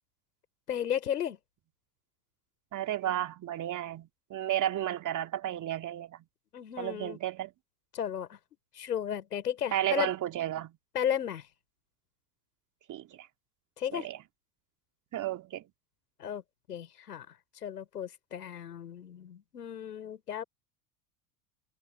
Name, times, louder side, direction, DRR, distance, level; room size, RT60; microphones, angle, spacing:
voice 1, 0.7-1.4 6.5-7.2 7.9-8.4 8.7-10.1 10.9-11.5 13.8-14.1 16.2-16.4 16.7-17.3 17.6-20.4, left 9 dB, 85° left, 6.0 m, -34 dB
voice 2, 2.7-6.2 6.8-7.5 9.7-10.8 12.9-13.3 13.9-14.2 15.1-15.6, right 12 dB, 40° right, 2.9 m, -33 dB
hypercardioid pair, 85°, 46 cm